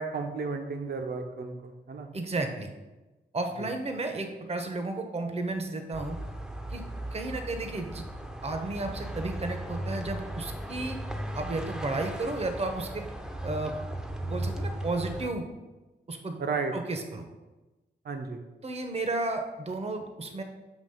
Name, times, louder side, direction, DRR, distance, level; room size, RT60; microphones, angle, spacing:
voice 1, 0.0-2.1 16.4-16.7 18.0-18.4, right 4 dB, 65° right, 5 dB, 0.9 m, -33 dB
voice 2, 2.1-2.7 3.3-6.2 6.7-6.8 7.1-8.0 8.4-11.0 11.3-13.1 13.4-13.7 14.3-15.5 16.1-16.4 16.7-17.3 18.6-20.4, right 2 dB, 35° right, 6 dB, 0.8 m, -33 dB
sound 1, 5.9-15.3, right 1 dB, 5° right, 0.7 m, -37 dB
7.2 x 2.9 x 5.5 m, 1.1 s
cardioid pair, 65°, 18 cm